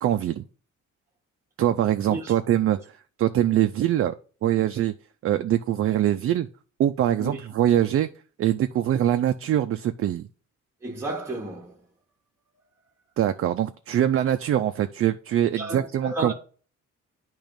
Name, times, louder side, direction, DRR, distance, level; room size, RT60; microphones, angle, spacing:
voice 1, 0.0-0.4 1.6-2.8 3.2-4.1 4.4-4.9 5.2-6.5 6.8-8.1 8.4-10.3 13.2-16.3, right 11 dB, 50° right, 0.4 m, -23 dB
voice 2, 10.8-11.8 15.5-16.3, right 1 dB, 10° right, 1.0 m, -32 dB
8.9 x 3.0 x 5.1 m
cardioid pair, 90°, 30 cm